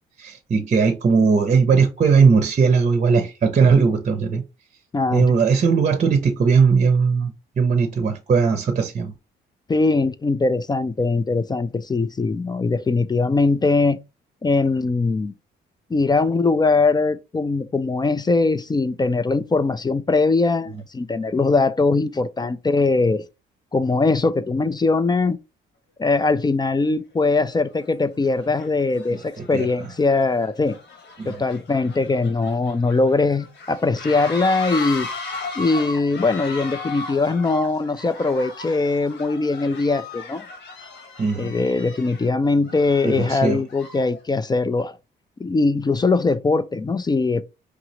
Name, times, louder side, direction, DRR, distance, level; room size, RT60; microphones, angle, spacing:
voice 1, 0.2-4.4 5.1-9.1 29.1-29.7 31.2-31.4 41.2-41.6 43.0-43.6, right 5 dB, 35° right, 0.7 m, -19 dB
voice 2, 4.9-5.3 9.7-14.0 14.4-15.3 15.9-23.2 23.7-25.4 26.0-30.7 31.3-35.1 35.6-40.5 41.4-44.9 45.4-47.4, left 3 dB, 20° left, 0.4 m, -21 dB
sound 1, 26.8-26.9 27.6-27.9 28.2-44.2, left 3 dB, 65° left, 1.3 m, -36 dB
4.8 x 2.6 x 2.9 m
cardioid pair, 90°, 20 cm